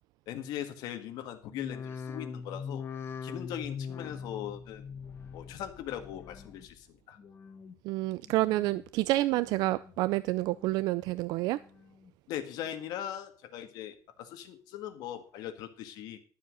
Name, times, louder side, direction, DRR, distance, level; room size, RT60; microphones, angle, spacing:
voice 1, 0.3-2.8 3.2-4.9 5.3-7.2 12.3-16.2, left 11 dB, 75° left, 1.8 m, -40 dB
sound 1, 1.5-6.8 7.1-7.7 8.2-8.9 9.3-10.0 10.4-11.1 11.5-12.1 12.6-12.7, left 6 dB, 35° left, 1.1 m, -43 dB
voice 2, 7.8-11.6, right 17 dB, 85° right, 0.4 m, -28 dB
12.0 x 7.3 x 6.3 m
cardioid pair, 170°, 7 cm